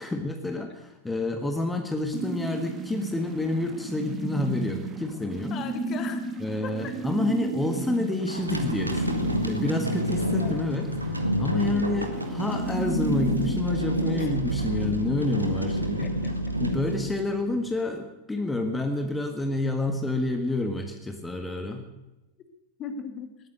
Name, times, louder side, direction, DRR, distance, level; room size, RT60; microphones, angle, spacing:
voice 1, 0.0-5.6 6.4-16.1 16.6-21.8, left 2 dB, 10° left, 5 dB, 1.6 m, -29 dB
sound 1, 2.1-13.6, right 3 dB, 25° right, 2.3 m, -34 dB
voice 2, 5.5-6.2 6.6-7.0 10.4-10.9 11.7-12.2 14.1-14.3 16.0-16.3 22.8-23.3, left 6 dB, 30° left, 8 dB, 2.0 m, -38 dB
sound 2, 8.3-17.7, equal, 85° right, 1.6 m, -29 dB
19.0 x 9.4 x 7.9 m, 1.0 s
figure-of-eight pair, 90°, 0 cm